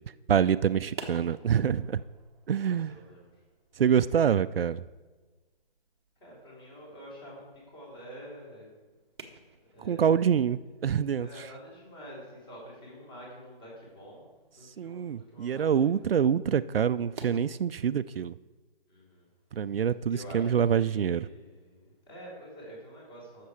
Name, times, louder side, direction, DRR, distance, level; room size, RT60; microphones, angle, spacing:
voice 1, 0.3-2.0 2.5-3.0 3.8-4.8 9.8-11.3 14.8-18.4 19.5-21.3, right 8 dB, 70° right, 14 dB, 0.4 m, -26 dB
sound 1, 0.7-17.4, right 4 dB, 25° right, 0.8 m, -52 dB
voice 2, 2.6-3.4 6.2-8.9 9.6-10.4 11.2-15.9 18.9-19.3 19.7-19.8 20.1-23.5, equal, 25° left, -4 dB, 3.3 m, -48 dB
13.0 x 6.7 x 4.8 m, 1.3 s
hypercardioid pair, 165°, 30 cm